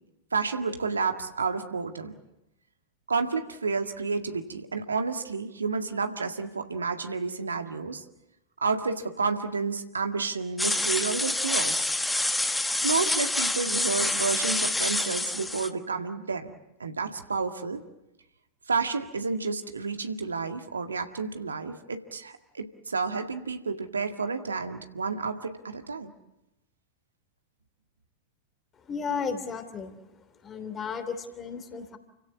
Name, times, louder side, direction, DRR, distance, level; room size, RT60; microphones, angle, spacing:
voice 1, 0.3-2.1 3.1-8.0 8.6-11.9 12.8-16.5 16.8-17.8 18.7-26.1, right 4 dB, 75° right, 6 dB, 1.9 m, -30 dB
sound 1, 10.6-15.7, left 2 dB, 5° left, 1.3 m, -27 dB
voice 2, 28.8-30.0 30.4-32.0, left 5 dB, 25° left, 9 dB, 3.0 m, -34 dB
30.0 x 16.5 x 9.7 m, 0.92 s
figure-of-eight pair, 90°, 0 cm